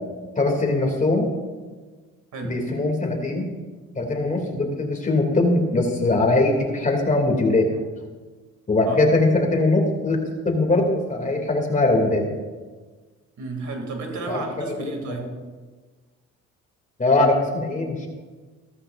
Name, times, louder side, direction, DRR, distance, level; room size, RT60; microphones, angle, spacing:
voice 1, 0.4-1.3 2.4-3.5 3.9-7.8 8.7-10.2 10.4-12.2 14.3-14.9 15.2-15.3 17.0-18.1, left 2 dB, 25° left, 1 dB, 2.7 m, -21 dB
voice 2, 13.4-15.3, right 3 dB, 70° right, 3 dB, 2.8 m, -32 dB
15.5 x 14.0 x 2.6 m, 1.4 s
cardioid pair, 90°, 30 cm